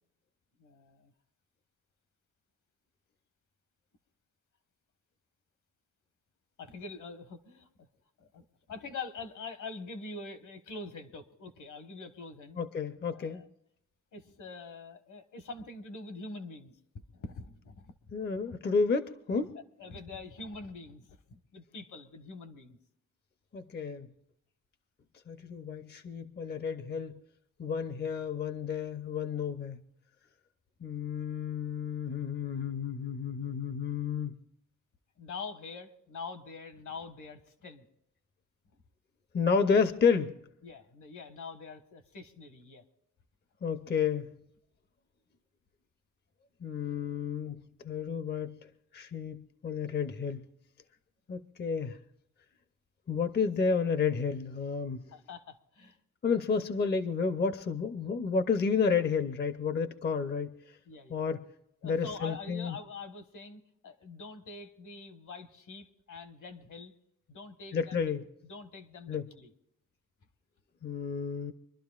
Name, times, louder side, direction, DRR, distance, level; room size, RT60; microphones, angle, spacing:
voice 1, 0.6-1.1 6.6-7.9 8.2-12.6 13.1-13.5 14.1-16.7 17.1-17.9 18.5-18.6 19.8-22.8 35.2-37.8 40.6-42.8 55.1-56.0 60.8-61.2 61.8-66.9 67.3-68.1 68.4-69.5, left 3 dB, 70° left, 9 dB, 1.5 m, -44 dB
voice 2, 12.6-13.4 18.1-19.5 23.5-24.1 25.3-27.2 27.6-29.8 30.8-34.4 39.3-40.4 43.6-44.3 46.6-48.6 48.9-50.4 51.3-52.0 53.1-55.0 56.2-60.8 61.1-61.4 61.8-62.8 67.7-68.2 69.1-69.3 70.8-71.5, left 5 dB, 35° left, 11 dB, 0.6 m, -31 dB
25.5 x 12.0 x 2.4 m, 0.78 s
wide cardioid pair, 150°, 31 cm